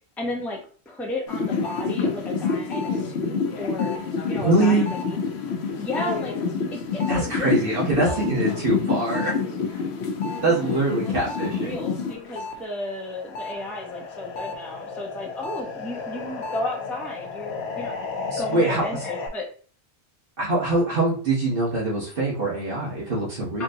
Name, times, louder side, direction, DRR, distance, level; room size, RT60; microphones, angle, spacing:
voice 1, 0.2-0.6 0.9-4.0 4.3-5.2 5.8-6.3 6.7-7.5 7.8-8.3 11.0-18.0 18.4-19.5 23.5-23.6, left 2 dB, ahead, -1 dB, 0.5 m, -33 dB
sound 1, 1.3-12.6 12.9-19.3, left 5 dB, 80° left, 0.9 m, -29 dB
voice 2, 4.4-4.9 7.1-9.3 10.4-11.8 18.3-19.0 20.4-23.6, right 2 dB, 60° right, -5 dB, 1.4 m, -23 dB
4.3 x 2.7 x 2.6 m, 0.42 s
omnidirectional pair, 1.1 m